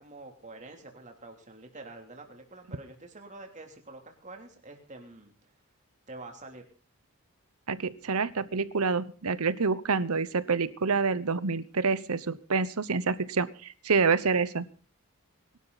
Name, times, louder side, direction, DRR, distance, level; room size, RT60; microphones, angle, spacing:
voice 1, 0.0-5.3 6.1-6.6, right 2 dB, 35° right, 3 dB, 3.2 m, -47 dB
voice 2, 7.7-14.7, right 4 dB, 80° right, 16 dB, 1.0 m, -27 dB
22.0 x 12.0 x 4.1 m, 0.38 s
head